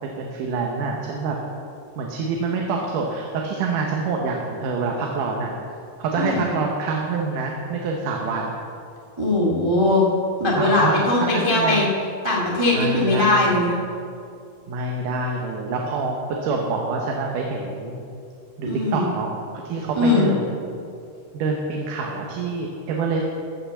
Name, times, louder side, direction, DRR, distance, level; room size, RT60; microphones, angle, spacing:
voice 1, 0.0-1.4 2.0-5.5 6.0-8.6 10.6-11.9 12.7-13.8 14.7-18.0 18.6-19.3 19.7-20.5 21.3-23.2, right 4 dB, 75° right, 0 dB, 2.6 m, -26 dB
voice 2, 6.1-6.5 9.2-10.0 10.4-11.9 12.2-13.8 18.6-19.1 19.9-20.3, left 2 dB, 20° right, -4 dB, 0.7 m, -20 dB
15.0 x 5.8 x 7.3 m, 2.4 s
omnidirectional pair, 3.8 m